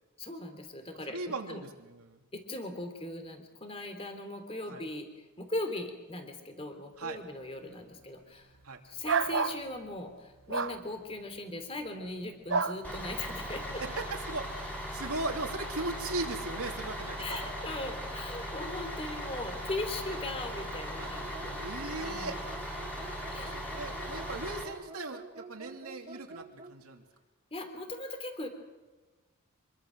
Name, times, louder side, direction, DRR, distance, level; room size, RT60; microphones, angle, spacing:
voice 1, 0.2-1.6 2.3-5.1 5.4-8.5 8.8-13.8 17.2-21.6 21.9-22.4 23.3-23.6 27.5-28.5, left 2 dB, 25° left, 7 dB, 3.1 m, -39 dB
voice 2, 1.1-2.2 4.7-4.8 7.0-7.2 8.6-8.8 13.7-17.5 20.0-20.5 21.0-21.1 21.4-22.4 23.4-27.0, right 2 dB, 80° right, 3 dB, 2.9 m, -38 dB
sound 1, 9.0-9.6 10.5-10.8 12.5-12.8, right 5 dB, 55° right, 0.9 m, -28 dB
Bus, 12.8-24.6, equal, 5° left, 5.2 m, -39 dB
sound 2, 20.9-26.8, right 3 dB, 30° right, 1.2 m, -48 dB
26.0 x 22.5 x 6.4 m, 1.2 s
head